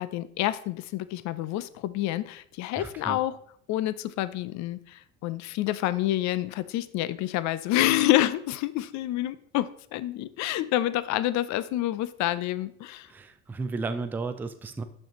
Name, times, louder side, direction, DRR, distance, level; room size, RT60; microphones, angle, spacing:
voice 1, 0.0-3.4 3.7-13.1, left 14 dB, 50° left, 16 dB, 0.5 m, -28 dB
voice 2, 2.8-3.2 13.1-14.8, right 4 dB, 5° right, 9 dB, 0.3 m, -33 dB
6.1 x 5.3 x 3.0 m, 0.64 s
supercardioid pair, 90°, 37 cm